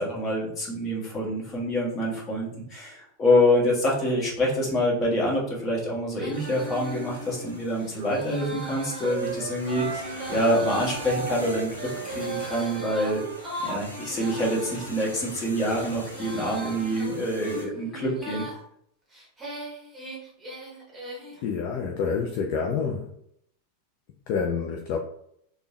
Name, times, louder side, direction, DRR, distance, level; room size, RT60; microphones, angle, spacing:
voice 1, 0.0-13.2 13.6-18.4, left 1 dB, 25° left, -3 dB, 1.2 m, -26 dB
Female singing, 6.1-15.0 15.6-18.6 19.1-21.4, right 1 dB, 10° right, 1.1 m, -39 dB
sound 1, 6.3-17.6, equal, 85° left, 0.7 m, -42 dB
Wind instrument woodwind instrument, 7.9-13.4, right 6 dB, 60° right, 0.4 m, -36 dB
voice 2, 21.4-23.1 24.3-25.0, left 5 dB, 45° left, 2 dB, 0.3 m, -28 dB
3.4 x 2.1 x 2.8 m, 0.71 s
figure-of-eight pair, 90°, 0 cm